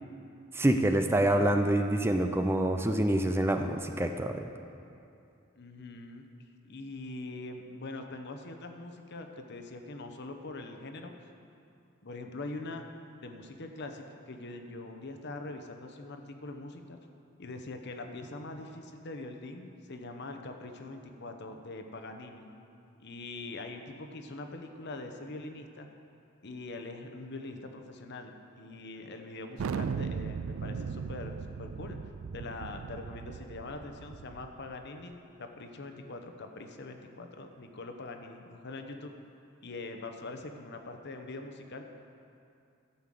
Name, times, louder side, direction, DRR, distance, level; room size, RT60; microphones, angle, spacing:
voice 1, 0.5-4.5, right 1 dB, 10° right, 6 dB, 0.4 m, -26 dB
voice 2, 5.6-6.2 6.6-11.1 12.0-12.8 13.2-17.0 17.4-22.5 23.0-25.9 26.4-32.0 32.3-39.1 39.6-41.8, left 2 dB, 55° left, 5 dB, 0.9 m, -43 dB
Thunder, 29.6-34.8, right 5 dB, 75° right, 0.4 m, -37 dB
13.5 x 5.7 x 7.6 m, 2.6 s
head